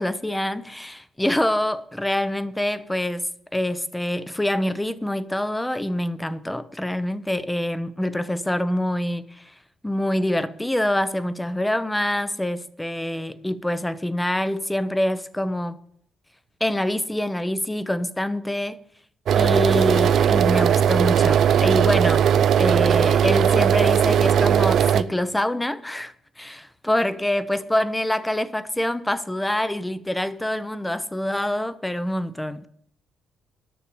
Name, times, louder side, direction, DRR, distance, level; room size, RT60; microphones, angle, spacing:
voice 1, 0.0-9.5 9.8-15.8 16.6-18.8 19.4-32.7, left 1 dB, 10° left, 0.7 m, -25 dB
sound 1, 19.3-25.0, right 9 dB, 65° right, 0.5 m, -18 dB
10.0 x 6.6 x 8.5 m
cardioid pair, 90°, 0 cm